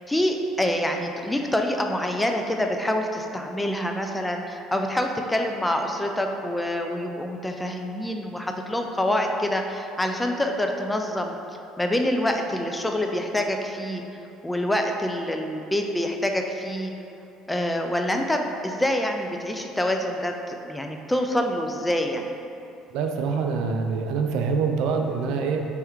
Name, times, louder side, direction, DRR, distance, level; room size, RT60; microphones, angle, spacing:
voice 1, 0.1-11.4 11.8-14.0 14.4-16.9 17.5-22.3, left 1 dB, 10° left, 3 dB, 0.3 m, -26 dB
voice 2, 22.9-25.6, right 5 dB, 75° right, 4 dB, 0.3 m, -25 dB
3.3 x 2.9 x 3.4 m, 2.8 s
cardioid pair, 110°, 0 cm